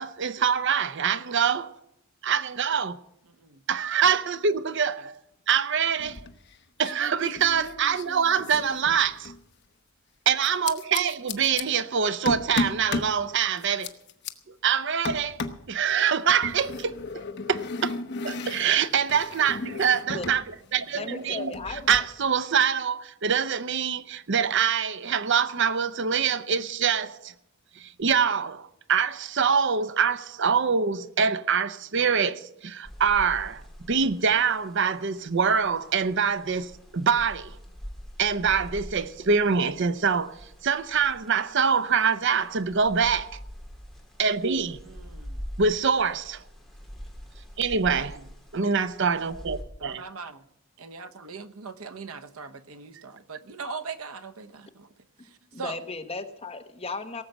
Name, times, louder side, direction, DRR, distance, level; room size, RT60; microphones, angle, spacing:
voice 1, 0.0-1.7 2.2-3.0 3.7-5.2 5.5-6.2 6.8-9.3 10.3-13.9 14.6-15.4 15.7-17.0 17.5-17.9 18.2-20.4 20.7-21.5 21.9-27.3 27.8-33.6 33.9-37.6 38.2-43.4 44.2-44.8 45.6-46.4 47.6-48.2 48.5-50.0, right 6 dB, 55° right, 0.6 m, -25 dB
voice 2, 3.3-3.6 5.0-5.1 8.6-8.7 11.2-11.7 44.8-45.4 47.9-48.2 49.8-50.5 50.8-54.9 55.2-55.8, right 5 dB, 80° right, 1.0 m, -41 dB
sound 1, 6.0-6.5 6.8-9.4 10.4-11.6 12.3-13.2 13.6-14.3 15.0-15.7 16.4-20.4 20.7-22.0, left 3 dB, 50° left, 1.1 m, -34 dB
voice 3, 20.9-22.0 55.5-57.2, left 3 dB, 25° left, 1.1 m, -35 dB
sound 2, 32.8-49.6, equal, ahead, 2.2 m, -44 dB
18.0 x 7.5 x 7.9 m
head